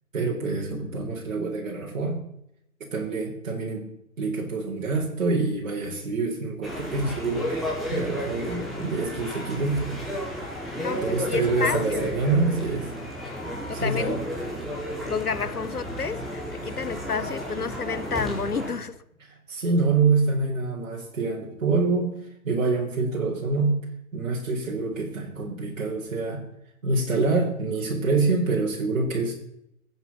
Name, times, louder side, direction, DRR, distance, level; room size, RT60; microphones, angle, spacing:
voice 1, 0.1-2.2 2.8-3.9 4.2-10.0 10.3-10.5 10.7-12.9 13.7-14.2 19.5-22.2 22.4-23.8 24.1-26.4 26.8-29.3, right 3 dB, 60° right, 4.2 m, -26 dB
sound 1, 6.6-18.7, equal, ahead, 4.4 m, -33 dB
voice 2, 10.8-12.2 13.7-14.3 15.1-19.0, left 5 dB, 85° left, 1.3 m, -30 dB
22.5 x 9.5 x 5.7 m
figure-of-eight pair, 130°, 44 cm